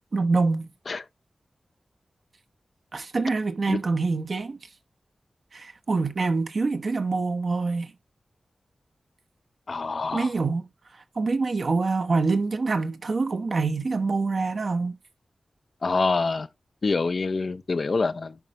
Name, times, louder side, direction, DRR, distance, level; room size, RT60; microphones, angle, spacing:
voice 1, 0.1-0.7 2.9-4.6 5.5-7.9 10.1-10.7 11.2-15.0, right 3 dB, 55° right, 1.0 m, -25 dB
voice 2, 9.7-10.3 15.8-16.5 16.8-18.3, left 4 dB, 55° left, 0.6 m, -26 dB
10.5 x 5.4 x 2.9 m
wide cardioid pair, 105°, 0 cm